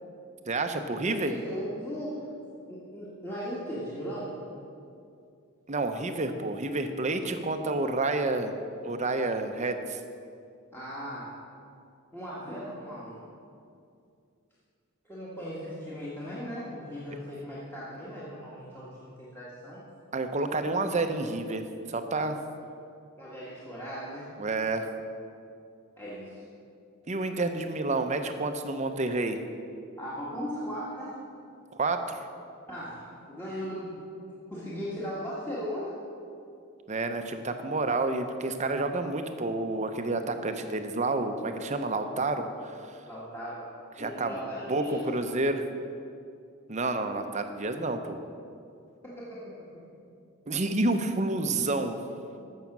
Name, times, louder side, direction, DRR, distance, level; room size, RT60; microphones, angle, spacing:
voice 1, 0.5-1.3 5.7-8.5 8.8-10.0 20.1-22.4 24.4-24.9 27.1-29.4 31.8-32.3 36.9-43.0 44.0-44.4 44.7-45.6 46.7-48.2 50.5-52.0, right 2 dB, 35° right, 7 dB, 0.7 m, -29 dB
voice 2, 1.1-2.2 2.7-4.3 10.7-11.3 12.1-13.2 15.1-19.8 23.2-24.3 26.0-26.4 30.0-31.2 32.7-34.1 34.5-36.0 43.1-43.7 44.0-45.1 49.0-49.9, equal, 10° left, -8 dB, 1.6 m, -38 dB
14.5 x 6.4 x 6.0 m, 2.5 s
head